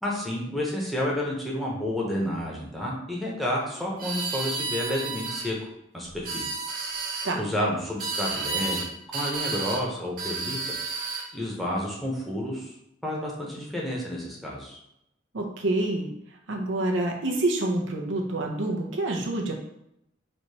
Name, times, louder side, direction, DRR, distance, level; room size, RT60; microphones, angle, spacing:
voice 1, 0.0-6.6 7.3-8.8 9.1-10.6 11.3-12.7 13.0-14.8, left 1 dB, ahead, -4 dB, 1.0 m, -30 dB
sound 1, 4.0-5.5 6.1-7.3 8.0-8.9 9.1-9.8 10.2-11.3, right 3 dB, 50° right, 0.9 m, -31 dB
voice 2, 15.3-16.1 16.5-19.5, right 2 dB, 85° right, 1 dB, 0.8 m, -27 dB
3.3 x 2.9 x 4.2 m, 0.81 s
head